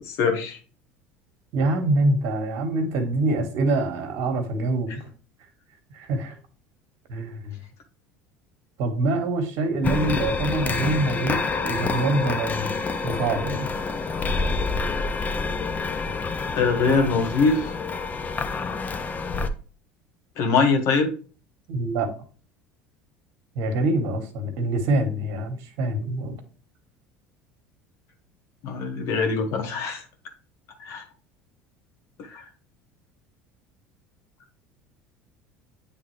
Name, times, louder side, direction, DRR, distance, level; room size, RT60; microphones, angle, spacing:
voice 1, 0.2-0.6 16.5-17.6 20.4-21.1 28.6-30.0 30.8-31.0 32.3-32.4, left 4 dB, 60° left, 5 dB, 1.5 m, -22 dB
voice 2, 1.5-5.0 5.9-6.3 7.1-7.5 8.8-12.7 13.0-13.7 21.7-22.1 23.5-26.4, right 2 dB, 60° right, 5 dB, 1.4 m, -25 dB
sound 1, 9.8-19.5, left 4 dB, 30° left, 0.7 m, -28 dB
8.6 x 3.5 x 3.2 m, 0.39 s
hypercardioid pair, 75°, 6 cm